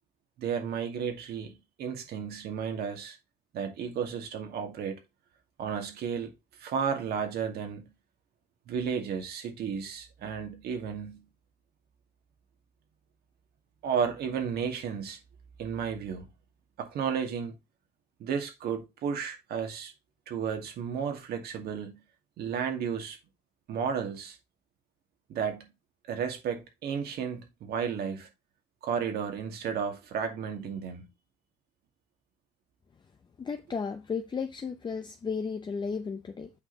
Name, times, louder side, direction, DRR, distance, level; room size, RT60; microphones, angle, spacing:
voice 1, 0.4-3.2 3.5-5.0 5.6-6.3 6.6-7.9 8.7-11.2 13.8-15.2 15.6-16.3 16.8-17.6 18.2-19.9 20.3-22.0 22.4-23.2 23.7-24.4 25.3-25.7 26.1-28.3 28.8-31.1, right 7 dB, 70° right, 2.3 m, -33 dB
voice 2, 33.4-36.5, left 5 dB, 25° left, 0.7 m, -34 dB
8.2 x 5.1 x 4.0 m
cardioid pair, 110°, 17 cm